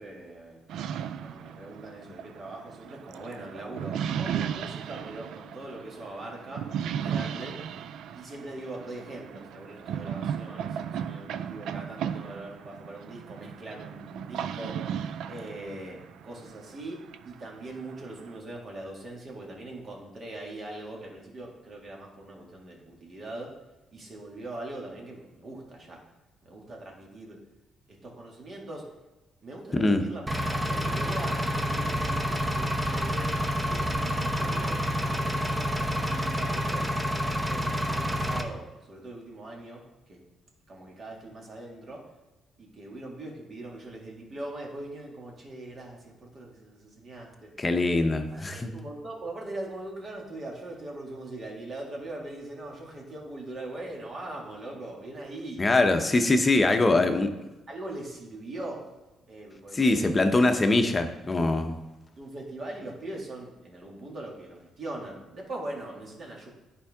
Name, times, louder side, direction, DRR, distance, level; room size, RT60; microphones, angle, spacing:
voice 1, 0.0-7.6 8.1-14.9 15.3-23.5 23.9-26.0 26.4-27.4 27.9-28.9 29.4-30.2 30.5-33.3 33.6-36.9 37.3-40.2 40.7-42.1 42.6-47.5 48.3-55.6 57.7-58.9 59.3-60.2 62.1-66.5, right 2 dB, 45° right, -1 dB, 2.0 m, -41 dB
sound 1, 0.7-18.4, right 8 dB, 80° right, 0.3 m, -36 dB
Engine, 30.3-38.4, equal, 15° right, 0.8 m, -28 dB
voice 2, 47.6-48.7 55.6-57.3 59.7-61.8, left 2 dB, 25° left, 6 dB, 0.8 m, -23 dB
10.0 x 4.6 x 3.6 m, 1.1 s
cardioid pair, 90°, 0 cm